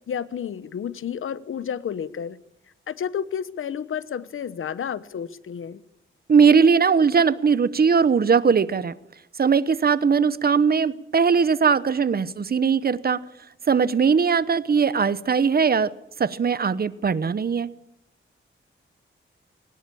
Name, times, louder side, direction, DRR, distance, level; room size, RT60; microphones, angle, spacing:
voice 1, 0.1-2.4 2.9-5.8, left 8 dB, 80° left, 1.0 m, -31 dB
voice 2, 6.3-8.9 9.4-13.2 13.7-15.9 16.2-17.7, right 6 dB, 45° right, 1.0 m, -20 dB
22.0 x 19.0 x 8.5 m
wide cardioid pair, 110°, 21 cm